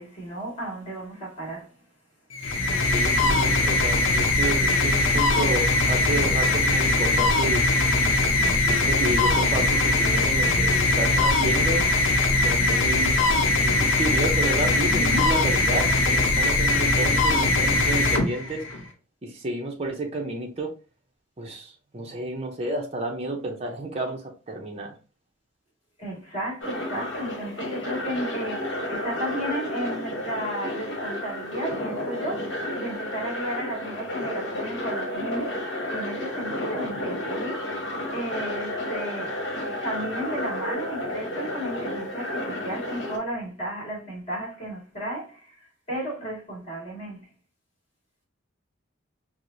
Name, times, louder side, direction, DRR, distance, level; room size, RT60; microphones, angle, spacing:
voice 1, 0.0-1.8 14.8-15.3 26.0-47.3, right 1 dB, 30° left, 1.8 m, -34 dB
sound 1, 2.3-18.8, left 2 dB, 80° left, 0.6 m, -21 dB
voice 2, 2.8-7.7 8.7-11.8 12.3-13.2 13.6-18.6 19.2-20.7 21.4-24.2 24.5-24.9, right 2 dB, 30° right, 0.5 m, -31 dB
sound 2, 26.6-43.2, left 1 dB, 60° left, 1.1 m, -31 dB
4.5 x 2.0 x 2.5 m
head